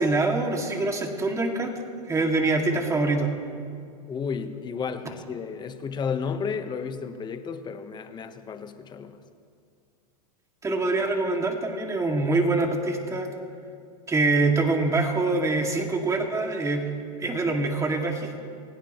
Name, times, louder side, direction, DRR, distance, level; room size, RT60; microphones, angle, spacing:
voice 1, 0.0-1.7 2.1-3.3 10.6-13.3 14.1-16.9 17.2-18.4, right 3 dB, 15° right, 2 dB, 2.2 m, -24 dB
voice 2, 4.1-9.2 17.2-17.4, left 6 dB, 20° left, 8 dB, 1.1 m, -32 dB
27.5 x 16.5 x 3.1 m, 2.3 s
hypercardioid pair, 120°, 19 cm